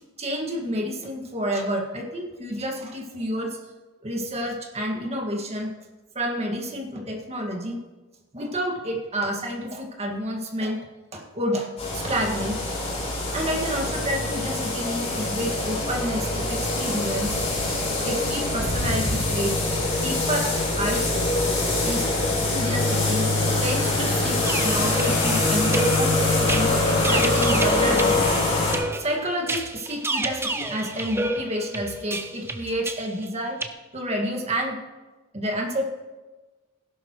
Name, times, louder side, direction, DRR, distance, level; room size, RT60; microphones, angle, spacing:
voice 1, 0.2-3.6 4.0-5.7 6.2-7.8 8.3-10.8 11.1-12.6 13.3-17.4 18.0-19.6 20.0-20.5 20.8-21.1 21.8-22.1 22.5-23.3 23.6-26.7 27.1-28.3 29.0-33.6 33.9-34.8 35.3-35.9, equal, 30° right, 1 dB, 1.9 m, -29 dB
sound 1, 11.8-28.7, left 2 dB, 30° left, 4.3 m, -24 dB
sound 2, 24.5-33.7, right 2 dB, 10° right, 0.6 m, -31 dB
16.5 x 11.5 x 3.1 m, 1.2 s
head